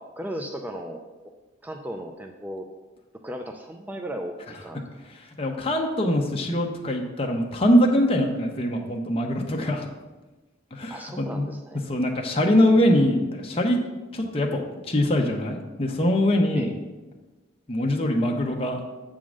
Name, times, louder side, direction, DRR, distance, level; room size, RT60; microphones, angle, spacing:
voice 1, 0.0-1.3 1.6-2.7 3.2-5.0 10.9-11.8 16.5-16.8, equal, 10° right, 3 dB, 0.3 m, -36 dB
voice 2, 5.4-9.9 10.7-11.5 11.9-13.8 14.1-16.7 17.7-18.8, left 1 dB, 30° left, 1 dB, 0.8 m, -23 dB
7.4 x 3.8 x 6.1 m, 1.2 s
head